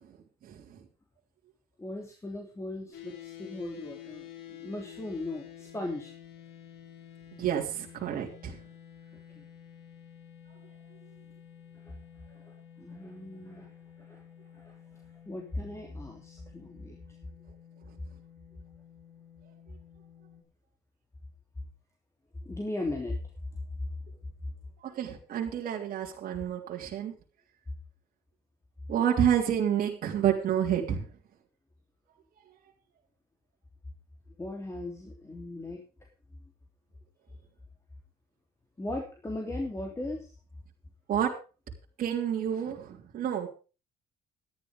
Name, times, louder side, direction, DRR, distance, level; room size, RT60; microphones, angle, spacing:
voice 1, 1.8-6.1 9.3-9.4 11.8-12.0 12.3-13.7 14.0-14.2 14.5-17.0 22.4-23.2 34.4-35.8 38.8-40.3, left 2 dB, 15° left, 1 dB, 3.2 m, -38 dB
sound 1, 2.9-20.4, left 10 dB, 80° left, 3.6 m, -50 dB
voice 2, 7.4-8.5 24.8-27.1 28.9-31.0 41.1-41.3 42.0-43.5, right 9 dB, 60° right, -1 dB, 3.2 m, -29 dB
13.0 x 11.0 x 5.2 m, 0.34 s
cardioid pair, 110°, 17 cm